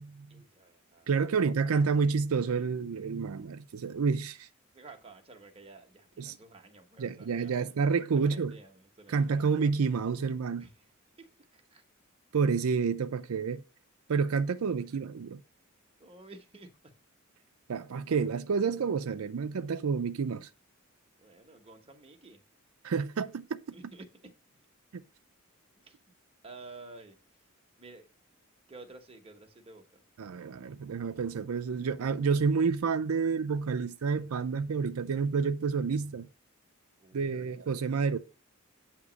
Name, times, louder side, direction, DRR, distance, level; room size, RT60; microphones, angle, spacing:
voice 1, 0.3-1.4 4.7-7.7 8.1-9.5 10.6-10.8 11.2-11.8 16.0-16.7 21.2-22.4 23.7-24.1 25.8-26.0 26.4-27.2 27.8-28.0 28.7-30.0 37.0-38.0, right 3 dB, 25° right, 1.0 m, -52 dB
voice 2, 1.1-4.5 6.2-6.4 7.0-8.5 9.1-10.7 12.3-13.6 14.1-15.4 17.7-20.5 22.8-23.6 24.9-25.0 30.2-36.3 37.1-38.2, right 5 dB, 90° right, 0.5 m, -29 dB
8.2 x 2.9 x 6.0 m
head